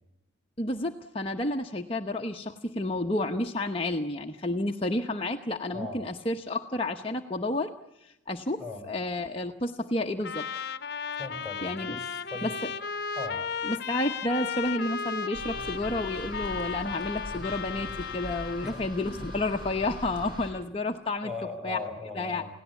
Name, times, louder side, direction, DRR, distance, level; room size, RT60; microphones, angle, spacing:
voice 1, 0.6-7.7 8.0-10.5 11.6-12.0 12.4-12.5 13.6-21.3 21.6-21.8 22.1-22.4, left 2 dB, 30° left, 3 dB, 1.0 m, -31 dB
Trumpet, 10.2-18.8, left 6 dB, 55° left, 1.0 m, -35 dB
voice 2, 11.2-12.5 13.2-13.4 18.6-19.3 21.2-22.5, left 3 dB, 5° right, 5 dB, 5.4 m, -39 dB
sound 1, 15.3-20.5, left 1 dB, 25° right, 7.7 m, -41 dB
28.5 x 17.5 x 8.3 m, 0.90 s
head